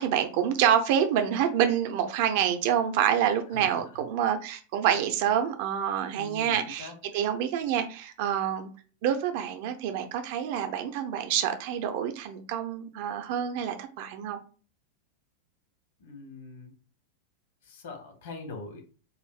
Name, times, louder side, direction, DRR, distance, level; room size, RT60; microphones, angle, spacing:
voice 1, 0.0-8.7 9.0-14.4, right 9 dB, 50° right, 0.6 m, -27 dB
voice 2, 6.1-6.9 16.0-16.7 17.6-18.8, left 3 dB, 60° left, 1.4 m, -42 dB
7.2 x 2.6 x 2.4 m
figure-of-eight pair, 90°, 0 cm